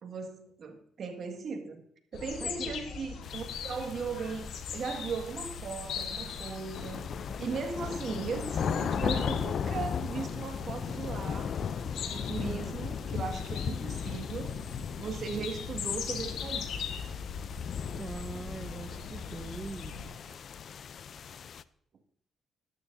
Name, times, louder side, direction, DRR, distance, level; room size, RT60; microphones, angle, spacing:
voice 1, 0.0-1.8 2.1-4.5 4.7-11.6 12.1-14.6 15.0-16.8 20.3-20.4, right 5 dB, 55° right, 5 dB, 1.8 m, -38 dB
sound 1, 2.1-20.1, left 6 dB, 80° left, 1.2 m, -40 dB
sound 2, 3.2-21.6, left 7 dB, 55° left, 0.4 m, -37 dB
voice 2, 12.4-12.8 15.3-15.5 18.0-20.0, right 3 dB, 25° right, 7 dB, 0.8 m, -41 dB
13.0 x 12.0 x 2.7 m, 0.69 s
cardioid pair, 90°, 0 cm